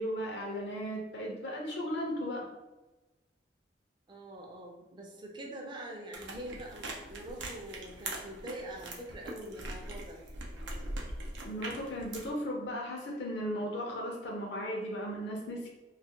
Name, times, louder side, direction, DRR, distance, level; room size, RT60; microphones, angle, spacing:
voice 1, 0.0-2.5 11.4-15.7, equal, 65° left, -1 dB, 0.5 m, -36 dB
voice 2, 4.1-10.2, right 1 dB, 25° right, 0 dB, 0.5 m, -44 dB
sound 1, 6.1-12.3, right 2 dB, 80° right, 0.5 m, -42 dB
2.3 x 2.1 x 2.8 m, 1.1 s
head